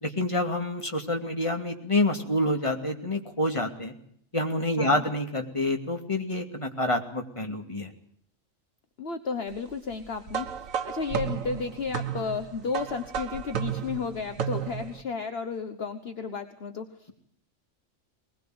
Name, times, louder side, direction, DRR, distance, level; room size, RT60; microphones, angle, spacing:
voice 1, 0.0-3.9 4.3-7.9, left 1 dB, 25° left, 3 dB, 2.5 m, -27 dB
voice 2, 9.0-17.1, left 5 dB, 50° left, 8 dB, 1.4 m, -33 dB
sound 1, 10.3-15.0, right 8 dB, 90° right, 1.5 m, -33 dB
21.0 x 20.5 x 7.8 m, 0.64 s
omnidirectional pair, 1.3 m